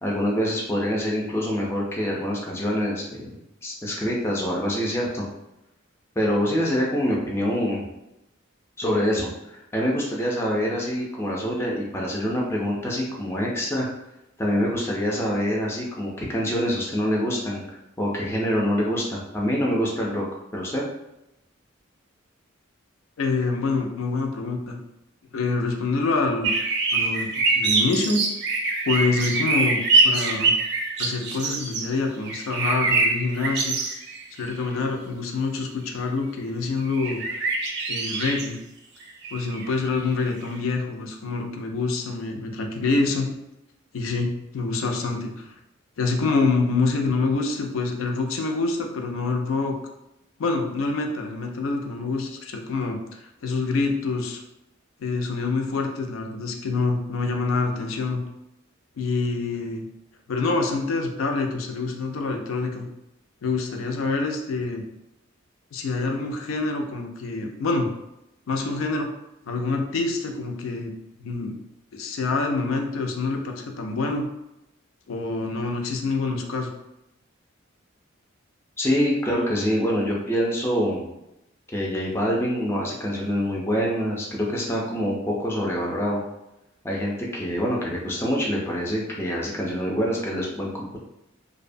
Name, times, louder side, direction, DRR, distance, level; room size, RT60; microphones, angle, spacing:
voice 1, 0.0-5.2 6.2-7.9 8.8-13.9 14.4-20.2 20.5-20.8 78.8-81.1 81.7-86.2 86.8-91.0, equal, 10° left, -3 dB, 0.3 m, -25 dB
voice 2, 23.2-24.8 25.3-26.5 26.9-28.2 28.8-30.5 31.0-33.7 34.3-37.2 37.9-38.6 39.3-43.3 43.9-45.5 46.0-49.8 50.4-54.4 55.0-58.2 59.0-59.9 60.3-62.9 63.4-64.8 65.7-67.9 68.5-69.1 69.5-70.9 71.2-71.6 71.9-74.3 75.1-76.7, left 3 dB, 80° left, 3 dB, 0.4 m, -26 dB
sound 1, 26.4-31.8 32.2-34.2 34.5-34.6 36.8-38.4 39.0-39.7 40.3-40.4, right 3 dB, 55° right, 0.4 m, -24 dB
2.7 x 2.1 x 2.5 m, 0.88 s
head